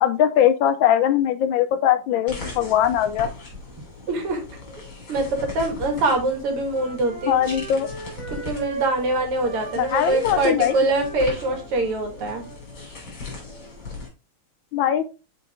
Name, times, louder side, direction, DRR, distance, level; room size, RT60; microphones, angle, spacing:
voice 1, 0.0-3.3 7.3-7.9 9.8-10.7 14.7-15.1, left 10 dB, 75° left, 11 dB, 1.2 m, -20 dB
sound 1, 2.3-14.1, left 3 dB, 50° left, 3.5 m, -38 dB
voice 2, 4.1-4.4 5.1-7.4 8.3-12.4, right 2 dB, 85° right, 3 dB, 2.6 m, -24 dB
Wind instrument woodwind instrument, 6.2-12.6, right 5 dB, 35° right, 1.7 m, -37 dB
6.8 x 4.7 x 3.5 m, 0.30 s
omnidirectional pair, 2.4 m